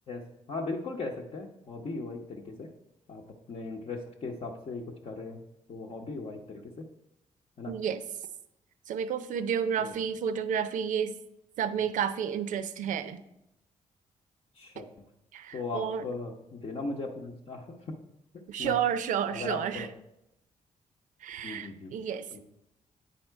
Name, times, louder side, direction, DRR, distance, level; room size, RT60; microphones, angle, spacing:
voice 1, 0.1-2.7 3.1-5.4 5.7-6.7 7.6-7.7 9.8-9.9 14.6-14.9 15.5-17.9 18.6-18.8 19.3-19.9 21.4-21.9 22.3-22.4, left 3 dB, 50° left, -1 dB, 0.8 m, -38 dB
voice 2, 7.7-8.0 8.9-11.1 11.6-13.2 15.3-16.1 18.5-19.9 21.2-22.4, right 8 dB, 80° right, 12 dB, 0.5 m, -31 dB
9.0 x 4.2 x 4.5 m, 0.85 s
cardioid pair, 100°, 13 cm